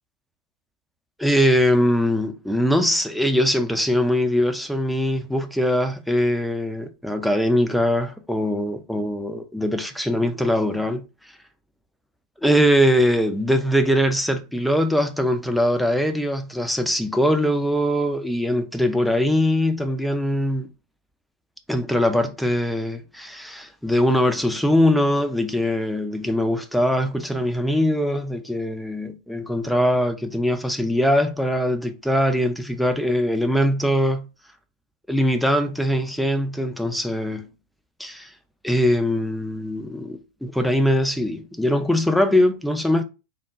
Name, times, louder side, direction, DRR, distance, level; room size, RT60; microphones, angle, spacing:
voice 1, 1.2-11.0 12.4-20.7 21.7-34.3 35.1-37.5 38.0-38.3 38.6-43.0, equal, ahead, 0.5 m, -22 dB
3.6 x 2.2 x 3.7 m
figure-of-eight pair, 90°, 0 cm